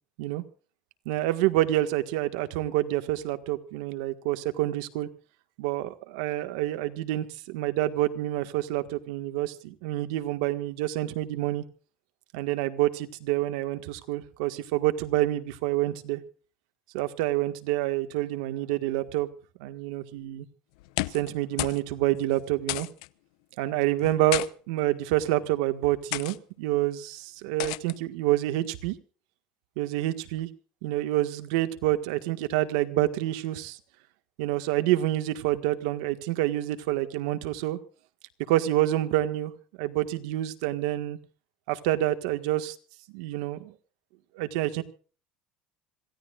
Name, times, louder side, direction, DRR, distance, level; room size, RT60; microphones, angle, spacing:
voice 1, 1.1-5.1 5.6-11.6 12.3-16.2 16.9-19.3 19.6-20.5 21.1-22.9 23.6-29.0 29.8-30.5 30.8-33.8 34.4-37.8 38.5-39.5 39.8-41.2 41.7-42.8 43.1-43.7 44.4-44.8, right 15 dB, 85° right, 9 dB, 1.6 m, -27 dB
sound 1, 20.8-21.3 21.6-21.8 22.1-22.2 22.7-23.1 24.0-24.5 25.3-25.5 26.1-26.4 27.6-28.0, left 20 dB, 90° left, 0.7 m, -32 dB
26.5 x 16.5 x 2.5 m, 0.40 s
cardioid pair, 155°, 3 cm